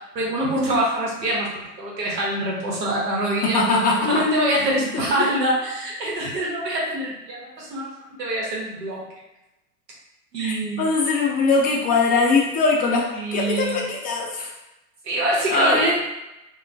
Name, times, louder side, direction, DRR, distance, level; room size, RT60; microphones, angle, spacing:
voice 1, 0.1-3.6 4.0-9.0 10.3-10.9 13.1-13.8 15.0-15.9, right 1 dB, 85° right, -4 dB, 0.9 m, -24 dB
voice 2, 3.4-4.2 4.9-5.1 10.4-14.5 15.5-15.9, left 3 dB, 20° left, -2 dB, 0.4 m, -21 dB
2.2 x 2.1 x 2.6 m, 0.96 s
hypercardioid pair, 80°, 48 cm